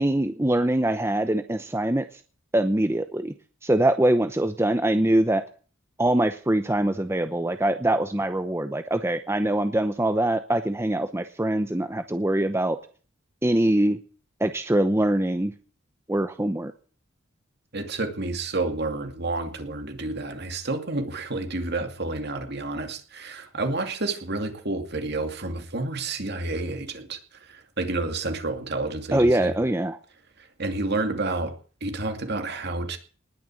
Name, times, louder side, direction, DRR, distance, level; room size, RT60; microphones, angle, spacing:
voice 1, 0.0-2.0 2.5-3.3 3.6-5.4 6.0-12.8 13.4-14.0 14.4-15.5 16.1-16.7 29.1-30.0, right 1 dB, 15° right, 0.7 m, -23 dB
voice 2, 17.7-29.5 30.6-31.5 31.8-33.0, right 2 dB, 55° right, 2.5 m, -30 dB
19.5 x 6.8 x 8.9 m
head